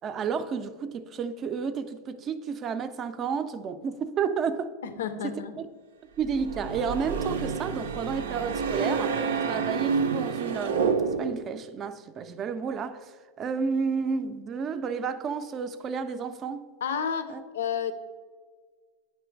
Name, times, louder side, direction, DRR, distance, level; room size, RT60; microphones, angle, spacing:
voice 1, 0.0-4.8 5.2-5.4 6.2-16.7 17.3-17.4, right 6 dB, 30° right, 0.4 m, -31 dB
voice 2, 4.8-5.6 16.8-17.9, left 7 dB, 85° left, 0.5 m, -31 dB
sound 1, 6.2-11.5, right 5 dB, 90° right, 0.5 m, -28 dB
8.7 x 3.1 x 4.5 m
supercardioid pair, 125°, 0 cm